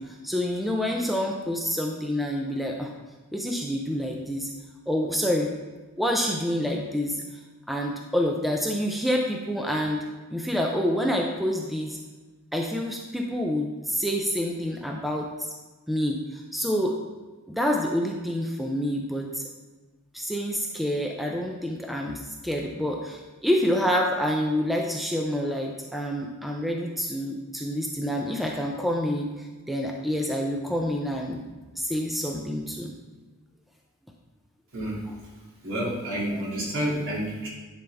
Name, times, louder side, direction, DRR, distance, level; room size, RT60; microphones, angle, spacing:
voice 1, 0.0-2.9 3.3-4.5 4.9-5.5 6.0-7.2 7.7-10.0 10.3-12.0 12.5-15.5 15.9-17.0 17.5-19.4 20.1-31.4 31.7-32.9, equal, ahead, 0 dB, 0.6 m, -27 dB
voice 2, 35.6-37.5, right 1 dB, 65° right, -5 dB, 2.9 m, -29 dB
11.0 x 5.5 x 3.5 m, 1.3 s
head